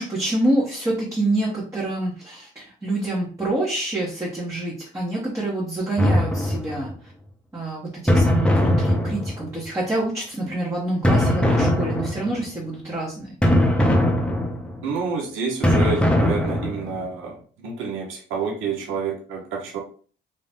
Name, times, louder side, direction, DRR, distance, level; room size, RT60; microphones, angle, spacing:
voice 1, 0.0-6.9 7.5-13.3, right 2 dB, 15° right, -6 dB, 1.0 m, -26 dB
sound 1, 6.0-7.0 8.1-9.7 11.0-12.5 13.4-14.9 15.6-17.0, left 1 dB, 5° left, 0.6 m, -20 dB
voice 2, 14.8-19.8, right 5 dB, 85° right, 1 dB, 0.7 m, -29 dB
2.6 x 2.4 x 3.4 m, 0.42 s
cardioid pair, 90°, 20 cm